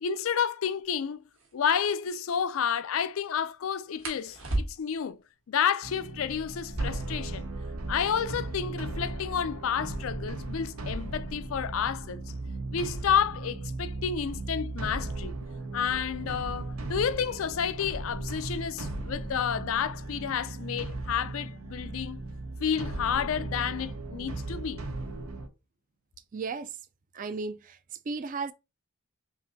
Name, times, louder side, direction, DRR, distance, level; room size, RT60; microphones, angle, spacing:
voice 1, 0.0-1.2 1.5-5.2 5.5-7.5 7.9-12.2 12.7-15.4 15.7-22.2 22.6-24.8, left 7 dB, 75° left, 0.4 m, -30 dB
sound 1, 0.8-0.9 1.3-1.5 4.0-5.1 6.6-8.2 8.5-8.6 8.8-9.4 10.0-12.6 13.6-13.9 14.3-14.8 15.1-15.8, right 1 dB, 65° right, 1.3 m, -37 dB
sound 2, 5.8-25.5, right 2 dB, 90° right, 0.7 m, -37 dB
voice 2, 26.3-26.8 27.1-28.5, right 4 dB, 40° right, 0.4 m, -35 dB
5.7 x 2.6 x 2.6 m
head